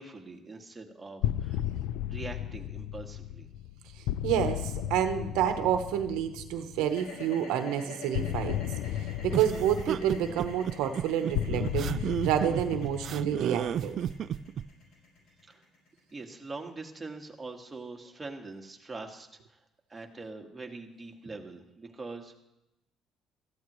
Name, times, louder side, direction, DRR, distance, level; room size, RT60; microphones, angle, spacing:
voice 1, 0.0-1.6 2.1-3.5 15.4-15.6 16.1-19.6 19.9-22.3, right 3 dB, 15° right, 2 dB, 1.7 m, -43 dB
sound 1, 1.2-7.0 8.1-14.4, left 11 dB, 85° left, 0.4 m, -35 dB
voice 2, 3.9-8.6 9.0-14.0, right 10 dB, 90° right, 7 dB, 1.0 m, -29 dB
sound 2, 6.9-17.0, left 3 dB, 70° left, 5.2 m, -46 dB
sound 3, 9.3-14.6, right 9 dB, 55° right, 0.3 m, -32 dB
17.5 x 13.5 x 3.1 m, 0.89 s
cardioid pair, 110°, 0 cm